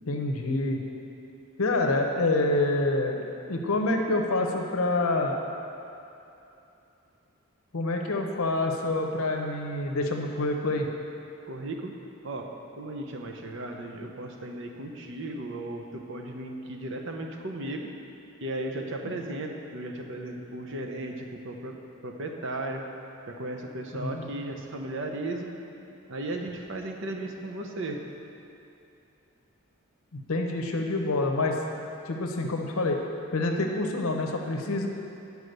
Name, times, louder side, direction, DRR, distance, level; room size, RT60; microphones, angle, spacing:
voice 1, 0.1-0.8 1.6-5.4 7.7-10.9 24.0-24.3 30.3-31.6 32.1-33.0 33.3-34.9, left 2 dB, 80° left, 2 dB, 0.8 m, -27 dB
voice 2, 11.5-11.9 12.2-12.5 12.7-17.9 18.4-21.7 22.0-22.8 23.3-25.5 26.1-28.0, right 2 dB, 60° right, 2 dB, 0.8 m, -35 dB
9.6 x 4.8 x 6.6 m, 2.8 s
head